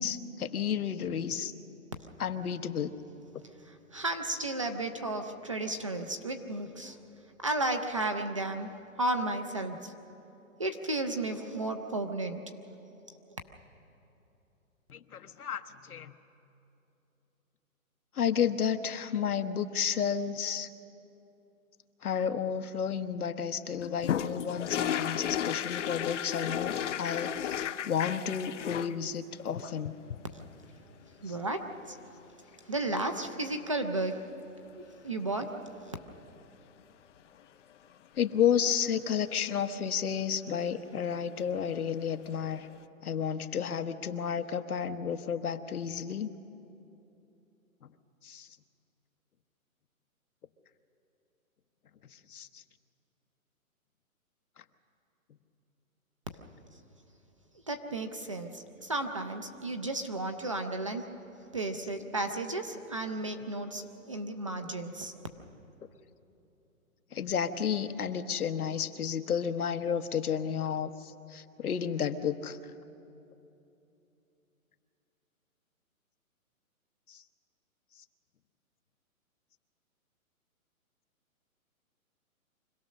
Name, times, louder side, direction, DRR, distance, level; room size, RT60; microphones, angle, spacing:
voice 1, 0.0-1.5 2.2-2.9 14.9-16.1 18.1-20.7 22.0-29.9 31.3-31.4 38.1-42.7 43.0-46.3 48.2-48.5 52.3-52.6 67.1-72.6 77.1-77.2, left 8 dB, 90° left, 8 dB, 1.2 m, -32 dB
voice 2, 3.9-7.0 7.4-8.7 9.0-9.9 10.6-12.4 30.3-30.4 31.2-32.0 32.7-34.2 34.7-36.0 57.7-61.1 61.5-65.1, right 2 dB, 25° right, 6 dB, 0.5 m, -33 dB
sound 1, 23.8-29.0 29.5-30.5 32.5-32.6 32.9-33.0 35.2-35.5 41.4-41.5 41.8-41.9, left 10 dB, 55° left, 0.6 m, -33 dB
25.0 x 16.5 x 6.5 m, 2.9 s
hypercardioid pair, 160°, 43 cm